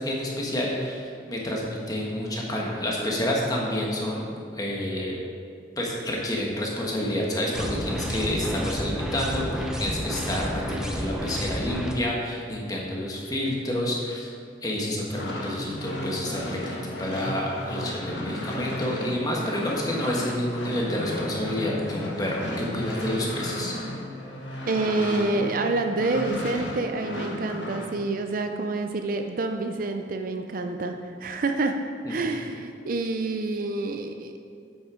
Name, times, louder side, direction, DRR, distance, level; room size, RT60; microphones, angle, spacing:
voice 1, 0.0-4.3 4.5-5.2 5.8-14.3 14.6-23.7 32.0-32.4, left 1 dB, 20° left, -2 dB, 1.3 m, -29 dB
sound 1, 7.5-11.9, equal, 5° right, 0.6 m, -31 dB
sound 2, 15.0-25.6 26.0-27.9, left 1 dB, 75° left, 1.7 m, -34 dB
voice 2, 24.7-31.0 31.2-31.8 32.1-34.4, right 2 dB, 50° right, 6 dB, 0.5 m, -27 dB
8.0 x 6.4 x 4.9 m, 2.3 s
head